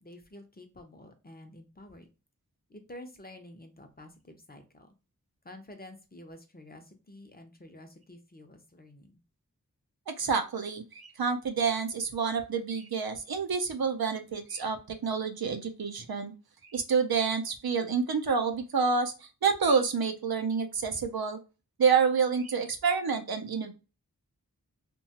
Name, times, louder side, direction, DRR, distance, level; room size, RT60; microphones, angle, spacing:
voice 1, 0.0-2.1 2.7-4.9 5.4-9.2, left 1 dB, 25° left, 5 dB, 0.5 m, -49 dB
voice 2, 10.1-16.3 16.6-21.4 21.8-23.7, right 5 dB, 90° right, 6 dB, 0.5 m, -28 dB
2.8 x 2.2 x 2.7 m, 0.30 s
wide cardioid pair, 40°, 35 cm